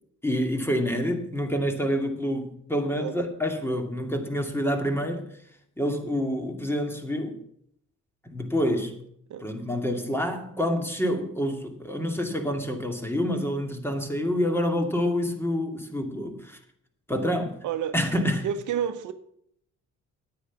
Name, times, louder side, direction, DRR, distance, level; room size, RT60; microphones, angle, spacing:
voice 1, 0.2-5.3 5.8-7.4 8.2-8.9 9.4-16.6 17.1-17.6 17.9-18.5, equal, 10° left, 2.3 m, -27 dB
voice 2, 17.6-17.9 18.4-19.1, right 9 dB, 75° right, 1.1 m, -29 dB
9.6 x 9.2 x 6.0 m
cardioid pair, 90°, 30 cm